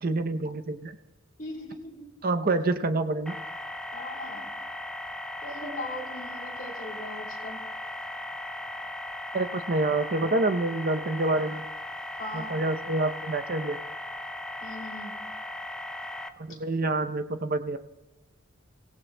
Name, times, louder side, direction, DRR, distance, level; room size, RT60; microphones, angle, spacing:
voice 1, 0.0-0.9 2.2-3.3 9.3-11.6 12.3-13.8 16.4-17.8, right 2 dB, 45° right, 9 dB, 0.7 m, -27 dB
voice 2, 1.4-2.1 3.9-4.5 5.4-7.6 12.1-12.6 14.6-15.2 16.5-16.6, left 1 dB, 40° left, -1 dB, 2.9 m, -39 dB
sound 1, 3.3-16.3, left 1 dB, 5° left, 0.5 m, -38 dB
30.0 x 16.5 x 2.2 m, 1.1 s
head